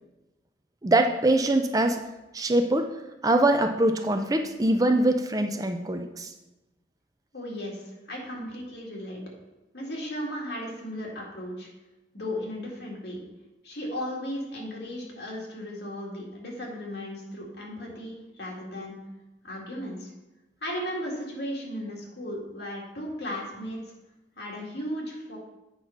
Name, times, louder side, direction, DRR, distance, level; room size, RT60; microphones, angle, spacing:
voice 1, 0.8-2.0 2.3-2.9 3.2-6.3, right 1 dB, 20° right, 6 dB, 0.4 m, -23 dB
voice 2, 7.3-9.2 9.7-11.7 12.1-13.2 13.6-19.0 19.4-20.1 20.6-23.9 24.4-25.4, equal, 65° left, -2 dB, 2.2 m, -36 dB
8.3 x 4.3 x 5.8 m, 1.0 s
head